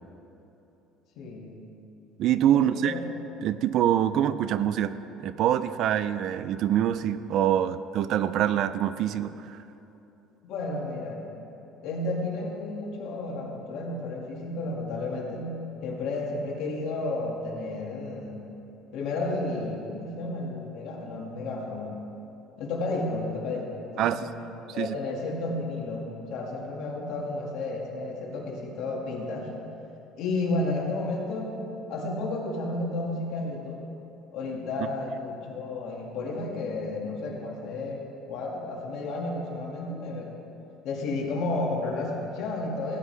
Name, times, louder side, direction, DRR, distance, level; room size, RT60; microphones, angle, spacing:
voice 1, 1.2-1.6 2.5-3.0 10.4-11.2 11.8-15.5 15.8-18.4 18.9-22.0 22.6-24.4 24.7-29.5 30.2-31.5 31.9-33.8 34.3-38.0 38.3-40.3 40.8-43.0, left 2 dB, 60° left, -2 dB, 2.1 m, -32 dB
voice 2, 2.2-2.9 3.4-4.9 5.2-9.6 24.0-24.3 24.8-25.0, right 10 dB, 55° right, 14 dB, 0.4 m, -25 dB
16.0 x 9.6 x 3.4 m, 3.0 s
cardioid pair, 140°, 0 cm